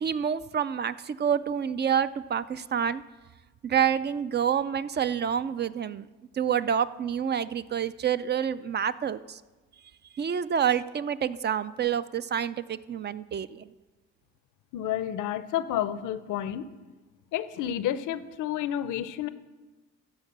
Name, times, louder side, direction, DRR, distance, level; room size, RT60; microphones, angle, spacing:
voice 1, 0.0-3.0 3.6-6.1 6.3-9.4 10.2-13.7, right 8 dB, 35° right, 15 dB, 0.4 m, -28 dB
voice 2, 14.7-16.7 17.3-19.3, left 11 dB, 80° left, 14 dB, 0.6 m, -30 dB
13.0 x 4.6 x 7.3 m, 1.2 s
cardioid pair, 90°, 30 cm